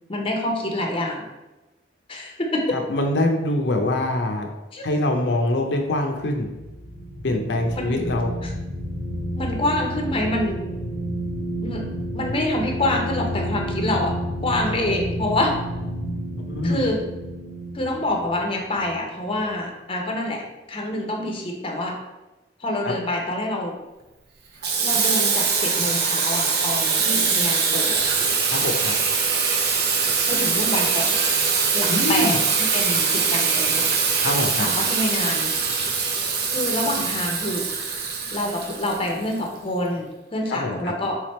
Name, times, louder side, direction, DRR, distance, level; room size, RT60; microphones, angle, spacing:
voice 1, 0.1-1.3 2.1-2.6 4.7-4.8 7.7-8.0 8.4-8.5 9.3-10.6 11.6-11.8 12.1-14.1 14.4-15.5 16.6-17.0 17.7-22.0 22.6-23.8 24.8-28.0 30.3-31.2 31.7-33.9 34.6-35.5 36.5-37.7 38.3-41.2, left 1 dB, 30° left, 1 dB, 0.6 m, -26 dB
voice 2, 2.7-4.5 4.8-6.5 7.2-8.3 16.5-16.8 22.8-22.9 28.5-28.9 31.9-32.3 34.2-34.7 40.5-40.9, left 1 dB, 80° left, 3 dB, 0.6 m, -24 dB
sound 1, 6.2-19.7, equal, 45° right, 1.2 m, -31 dB
Water tap faucet / Sink (filling or washing), 24.6-39.4, right 5 dB, 65° right, 0.6 m, -22 dB
3.4 x 3.3 x 4.2 m, 1.0 s
head